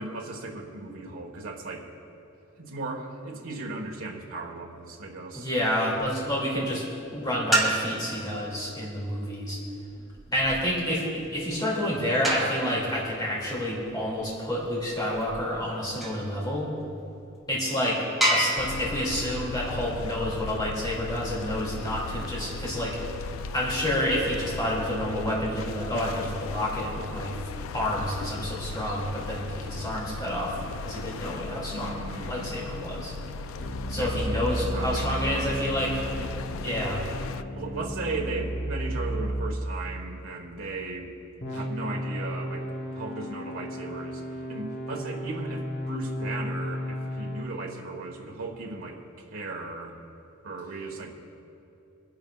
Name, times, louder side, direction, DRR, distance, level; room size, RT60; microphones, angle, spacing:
voice 1, 0.0-1.9 2.6-5.5 31.7-32.5 33.9-34.4 34.7-35.7 37.3-41.1 41.5-44.2 44.5-49.0 49.3-50.0 50.4-51.1, right 2 dB, 80° right, -1 dB, 1.4 m, -36 dB
voice 2, 5.3-6.8 7.1-9.6 10.3-16.7 17.5-18.0 18.3-23.0 23.5-27.4 27.7-30.6 30.8-33.1 33.9-36.3 36.6-37.1, equal, 20° left, -6 dB, 2.4 m, -29 dB
sound 1, 6.0-6.4 7.3-8.2 9.9-16.3 17.0-17.1 17.5-17.6 18.2-20.8 23.0-23.9, right 1 dB, ahead, 2.9 m, -31 dB
sound 2, 18.6-37.4, left 3 dB, 70° left, 0.4 m, -37 dB
sound 3, 33.6-39.5 41.4-47.5, equal, 55° left, 1.3 m, -33 dB
24.0 x 11.0 x 2.4 m, 2.8 s
head